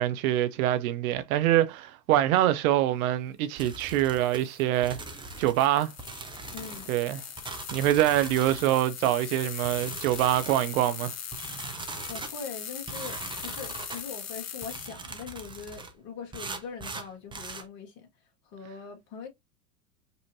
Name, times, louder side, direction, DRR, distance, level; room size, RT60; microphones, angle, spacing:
voice 1, 0.0-5.0 5.4-5.9 6.9-7.2 7.7-11.1, right 13 dB, 60° right, 0.7 m, -25 dB
sound 1, 3.6-14.9, left 8 dB, 30° left, 1.1 m, -41 dB
sound 2, 3.6-4.4 4.8-5.6 6.0-6.9 7.4-8.7 9.0-9.2 9.6-10.7 11.3-12.3 12.9-14.0 14.6-15.9 16.3-17.7, right 4 dB, 10° right, 0.7 m, -41 dB
voice 2, 6.5-7.0 12.1-18.1 18.4-19.3, left 6 dB, 50° left, 1.8 m, -42 dB
5.4 x 2.8 x 2.7 m
hypercardioid pair, 90°, 50 cm